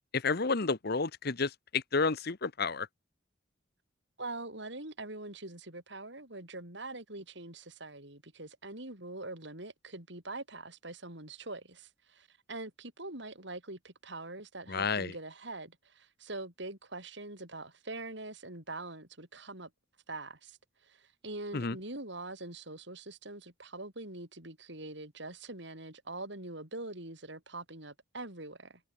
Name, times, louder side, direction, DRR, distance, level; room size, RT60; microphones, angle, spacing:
voice 1, 0.1-2.9 14.7-15.1 21.5-21.7, left 4 dB, 55° left, 1.1 m, -31 dB
voice 2, 4.2-19.7 20.1-20.6 20.8-28.8, right 2 dB, 65° right, 7.7 m, -43 dB
head